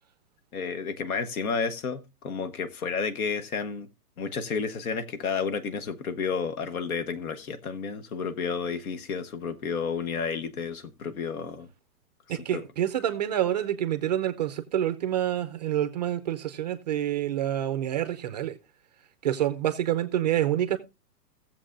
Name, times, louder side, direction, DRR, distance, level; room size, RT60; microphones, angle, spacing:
voice 1, 0.5-3.9 4.2-11.7 12.3-12.6, left 5 dB, 60° left, 1.3 m, -31 dB
voice 2, 12.3-18.6 19.2-20.8, right 11 dB, 30° right, 0.5 m, -27 dB
17.5 x 7.3 x 2.5 m
hypercardioid pair, 145°, 47 cm